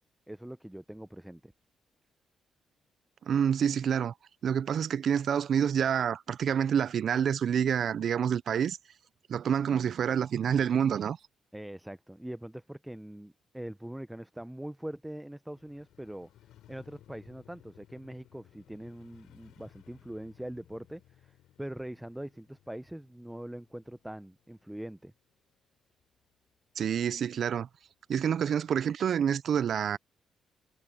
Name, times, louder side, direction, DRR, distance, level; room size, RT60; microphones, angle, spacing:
voice 1, 0.3-1.5 11.5-16.3 16.7-25.1, right 1 dB, 5° right, 0.6 m, -42 dB
voice 2, 3.3-4.1 4.4-8.8 9.3-11.2 26.8-27.7 28.1-30.0, right 8 dB, 60° right, 0.4 m, -27 dB
Motorcycle, 15.5-25.7 26.0-26.1, left 12 dB, 90° left, 6.4 m, -60 dB
cardioid pair, 100°, 0 cm